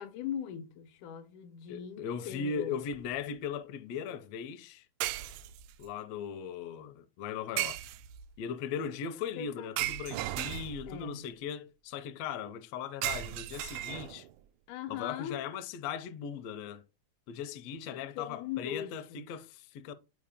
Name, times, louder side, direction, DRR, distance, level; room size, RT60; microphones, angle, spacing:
voice 1, 0.0-2.8 9.2-9.7 10.9-11.3 14.7-15.4 17.9-19.2, left 9 dB, 90° left, 2.3 m, -40 dB
voice 2, 1.7-4.9 5.8-7.8 8.4-14.3 14.9-16.8 17.3-19.9, left 7 dB, 75° left, 1.6 m, -38 dB
sound 1, 2.9-3.2 5.0-5.9 7.6-8.3 9.8-11.0 13.0-14.3, right 15 dB, 85° right, 2.0 m, -36 dB
8.5 x 4.6 x 3.5 m
omnidirectional pair, 3.5 m